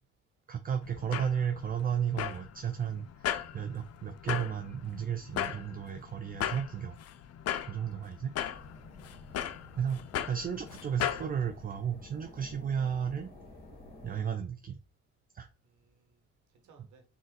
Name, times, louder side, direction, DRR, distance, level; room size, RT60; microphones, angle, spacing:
voice 1, 0.5-7.0 7.7-8.3 9.7-13.3 14.0-14.8 15.3-15.5, right 8 dB, 30° right, 8 dB, 0.4 m, -33 dB
sound 1, 0.8-11.3, left 10 dB, 55° left, 0.5 m, -38 dB
sound 2, 8.5-14.2, left 2 dB, 30° left, 1.7 m, -52 dB
voice 2, 15.6-17.0, right 5 dB, 75° right, 3 dB, 1.4 m, -65 dB
3.9 x 2.4 x 3.9 m, 0.33 s
cardioid pair, 90°, 30 cm